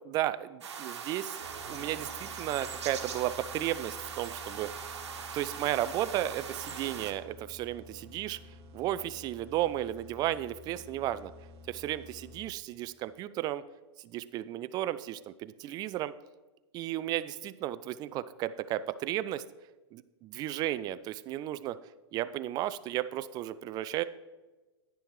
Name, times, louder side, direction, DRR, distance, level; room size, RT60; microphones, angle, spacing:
voice 1, 0.0-4.7 5.3-8.4 8.7-11.3 11.7-13.6 14.0-16.1 16.7-19.5 19.9-21.8 22.1-24.0, right 13 dB, 30° right, 14 dB, 0.4 m, -34 dB
sound 1, 0.6-7.1, right 6 dB, 80° right, 1.5 m, -41 dB
sound 2, 1.4-12.8, left 3 dB, 65° right, 1.4 m, -52 dB
10.0 x 10.0 x 3.2 m, 1.2 s
hypercardioid pair, 125°, 14 cm